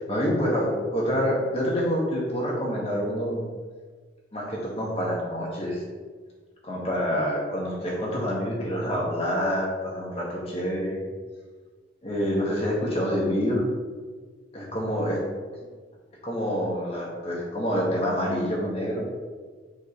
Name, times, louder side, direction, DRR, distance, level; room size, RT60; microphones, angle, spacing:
voice 1, 0.0-3.5 4.3-5.8 6.6-11.0 12.0-13.6 14.5-15.2 16.2-19.0, equal, 30° left, -4 dB, 1.9 m, -27 dB
9.6 x 5.2 x 3.3 m, 1.5 s
head